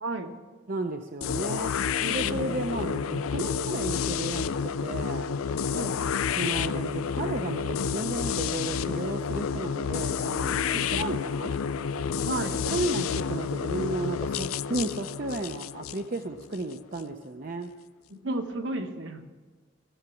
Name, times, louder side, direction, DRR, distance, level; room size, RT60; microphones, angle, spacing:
voice 1, 0.0-0.4 2.0-2.6 5.7-6.0 10.7-11.1 12.2-12.6 18.1-19.2, right 2 dB, 60° right, 5 dB, 1.2 m, -33 dB
voice 2, 0.7-1.7 2.1-5.3 6.4-11.6 12.7-17.7, right 2 dB, 40° right, 4 dB, 0.6 m, -33 dB
sound 1, 1.2-17.0, left 7 dB, 90° left, 0.4 m, -30 dB
16.5 x 7.2 x 7.1 m, 1.4 s
head